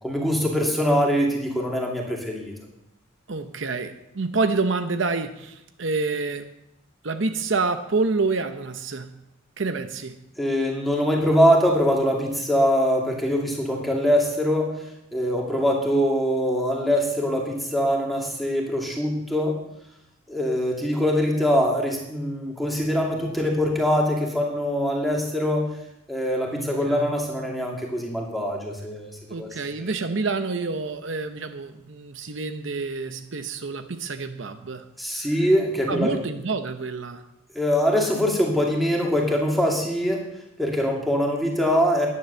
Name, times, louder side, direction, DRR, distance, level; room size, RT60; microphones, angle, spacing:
voice 1, 0.0-2.5 10.4-14.7 15.1-19.6 20.3-25.7 26.1-29.9 35.0-36.1 37.5-40.2 40.6-42.1, equal, ahead, -1 dB, 2.4 m, -23 dB
voice 2, 3.3-6.5 7.0-9.1 9.6-10.2 26.5-27.2 29.3-34.9 35.9-37.2, right 3 dB, 60° right, 8 dB, 0.8 m, -28 dB
11.0 x 9.7 x 6.8 m, 0.85 s
head